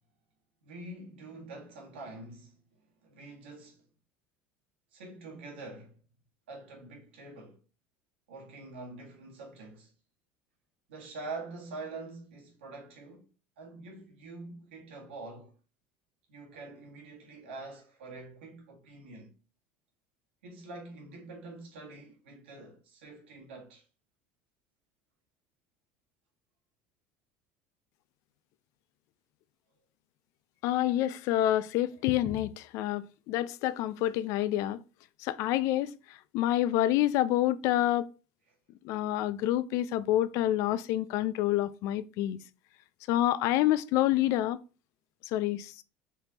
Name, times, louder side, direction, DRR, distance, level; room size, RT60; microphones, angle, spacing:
voice 1, 0.6-2.6 3.0-3.9 4.9-6.0 6.5-7.6 8.3-9.9 10.9-13.3 13.6-15.5 16.3-19.3 20.4-23.9, right 3 dB, 90° right, 1.6 m, -45 dB
voice 2, 30.6-34.8 35.2-35.9 36.3-38.1 38.8-42.4 43.1-44.6 45.3-45.8, left 13 dB, 65° left, 0.4 m, -28 dB
4.4 x 3.5 x 2.8 m
supercardioid pair, 90°, 6 cm